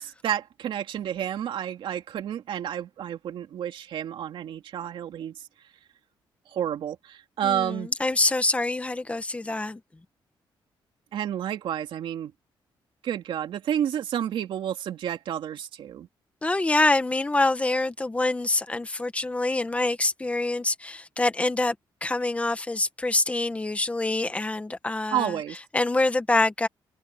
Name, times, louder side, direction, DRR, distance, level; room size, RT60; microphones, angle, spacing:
voice 1, 0.0-5.4 6.5-7.9 11.1-12.3 13.0-16.1 25.1-25.6, right 10 dB, 75° right, 2.7 m, -30 dB
voice 2, 7.4-9.8 16.4-21.7 22.0-25.3 25.7-26.7, left 2 dB, 15° left, 1.5 m, -25 dB
cardioid pair, 135°, 9 cm